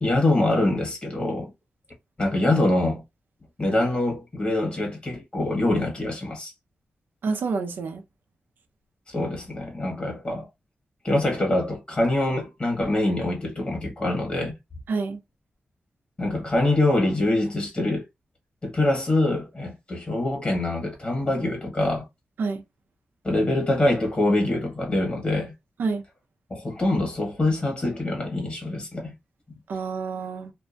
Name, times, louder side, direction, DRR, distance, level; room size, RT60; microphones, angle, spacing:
voice 1, 0.0-1.5 2.2-3.0 3.6-6.5 9.1-10.5 11.0-14.5 16.2-18.0 18.6-22.0 23.2-25.5 26.5-29.1 29.5-29.6, left 1 dB, 35° left, 1.5 m, -24 dB
voice 2, 7.2-8.0 14.9-15.2 22.4-22.6 25.8-26.0 29.7-30.5, right 4 dB, 80° right, 0.6 m, -28 dB
2.6 x 2.2 x 2.5 m
wide cardioid pair, 90°, 3 cm